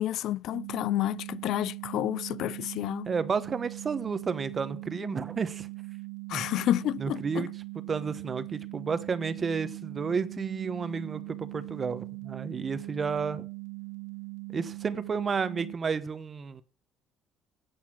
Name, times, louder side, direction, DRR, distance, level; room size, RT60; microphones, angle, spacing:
voice 1, 0.0-3.1 6.3-7.2, left 13 dB, 70° left, 0.5 m, -29 dB
sound 1, 0.5-15.7, right 27 dB, 85° right, 0.8 m, -41 dB
voice 2, 3.1-5.7 6.3-6.5 7.0-7.5 7.7-13.4 14.5-16.6, right 5 dB, 35° right, 1.1 m, -31 dB
10.0 x 8.2 x 6.2 m
cardioid pair, 95°, 0 cm